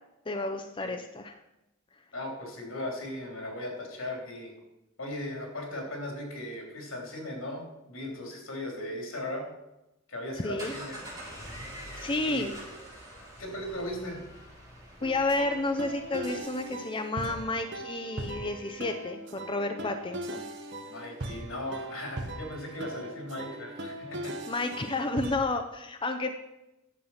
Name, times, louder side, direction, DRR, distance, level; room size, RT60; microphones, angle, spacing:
voice 1, 0.3-1.4 10.4-10.7 12.0-12.5 15.0-20.4 24.5-26.3, left 2 dB, 25° left, 6 dB, 0.5 m, -31 dB
voice 2, 2.1-4.5 5.0-9.5 10.1-11.0 12.2-12.5 13.4-14.2 20.9-24.3, left 1 dB, 85° left, 1 dB, 3.4 m, -37 dB
sound 1, 10.3-16.7, equal, 20° right, 4.2 m, -45 dB
sound 2, 15.0-25.6, right 1 dB, 60° right, 1.2 m, -40 dB
10.5 x 7.3 x 5.6 m, 0.92 s
head